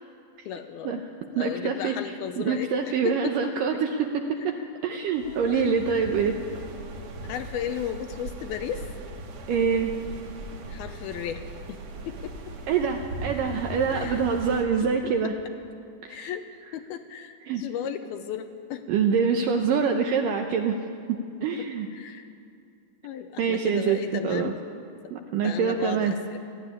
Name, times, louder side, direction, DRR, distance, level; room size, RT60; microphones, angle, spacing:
voice 1, 0.5-1.0 1.3-3.5 4.4-4.5 5.3-5.6 5.9-6.1 7.3-8.9 10.7-11.4 11.7-11.8 12.1-12.3 13.9-14.2 16.1-16.5 16.7-18.9 21.6-22.3 23.0-24.5 25.4-26.4, left 9 dB, 75° left, 8 dB, 2.4 m, -35 dB
voice 2, 1.4-2.0 2.4-6.4 9.5-9.9 12.7-15.4 16.0-16.3 17.5-17.6 18.9-20.8 21.1-21.9 23.4-24.5 25.1-26.1, right 6 dB, 75° right, 4 dB, 2.0 m, -25 dB
sound 1, 5.1-14.6, right 2 dB, 55° right, 3.1 m, -39 dB
19.5 x 14.0 x 9.8 m, 2.5 s
omnidirectional pair, 4.8 m